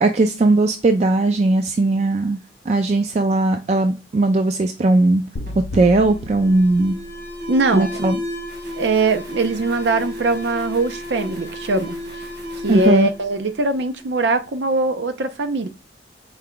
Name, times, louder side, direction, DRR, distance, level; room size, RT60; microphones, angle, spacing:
voice 1, 0.0-2.4 2.7-5.2 5.7-7.0 7.7-8.2 12.7-13.1, right 2 dB, 40° right, 0.3 m, -18 dB
sound 1, 5.4-7.5, left 1 dB, 85° left, 0.6 m, -34 dB
Alarm, 5.5-14.1, left 1 dB, 65° right, 1.6 m, -33 dB
voice 2, 7.5-7.9 8.8-12.0 12.6-15.7, right 2 dB, 90° right, 0.6 m, -21 dB
4.6 x 2.2 x 3.6 m
head